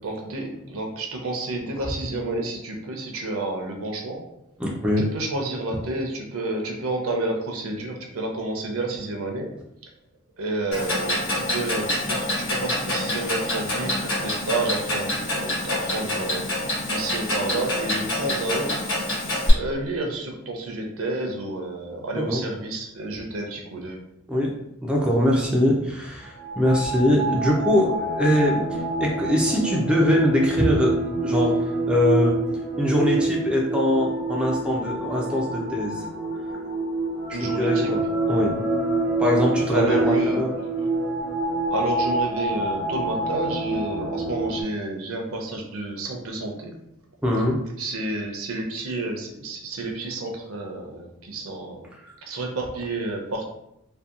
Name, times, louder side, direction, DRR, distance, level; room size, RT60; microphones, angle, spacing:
voice 1, 0.0-4.2 5.0-9.5 10.4-18.9 19.5-24.0 37.3-37.9 39.7-40.9 41.7-46.7 47.8-51.9 52.3-53.5, right 2 dB, 80° right, 1 dB, 0.5 m, -30 dB
voice 2, 4.6-5.1 22.1-22.4 24.3-24.6 24.8-32.4 32.8-36.1 37.3-38.0 38.3-38.6 39.2-40.5 47.2-47.6 52.0-52.1, left 1 dB, 5° right, -3 dB, 0.3 m, -22 dB
Clock, 10.7-19.5, left 1 dB, 75° left, 1.1 m, -27 dB
sound 1, 26.2-44.6, right 2 dB, 55° left, 0.9 m, -26 dB
2.7 x 2.1 x 2.4 m, 0.81 s
head